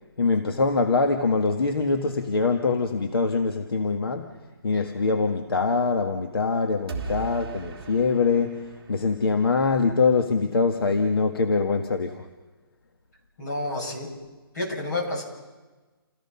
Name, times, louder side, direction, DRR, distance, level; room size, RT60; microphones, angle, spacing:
voice 1, 0.2-4.4 4.6-12.3, left 4 dB, 70° left, 5 dB, 1.6 m, -23 dB
sound 1, 6.9-9.8, right 5 dB, 20° right, 2.8 m, -38 dB
voice 2, 13.4-14.1 14.5-15.2, left 2 dB, 45° left, -1 dB, 7.8 m, -30 dB
29.5 x 17.5 x 5.7 m, 1.2 s
hypercardioid pair, 180°, 13 cm